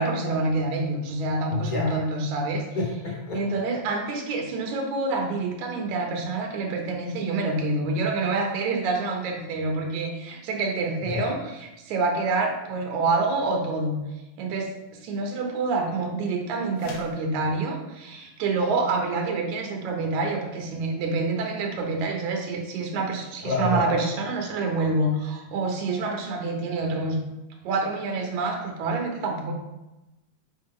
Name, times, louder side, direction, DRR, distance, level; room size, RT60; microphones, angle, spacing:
voice 1, 0.0-2.6 3.3-11.4 11.9-14.0 14.4-14.7 15.0-27.2 27.6-29.5, right 3 dB, 70° right, 2 dB, 2.4 m, -27 dB
voice 2, 1.5-2.0 2.7-3.6 11.0-11.3 23.4-23.9, left 3 dB, 20° left, -4 dB, 1.3 m, -29 dB
sound 1, 16.7-17.3, left 3 dB, 65° left, 2.2 m, -42 dB
7.9 x 5.2 x 3.7 m, 1.0 s
omnidirectional pair, 3.5 m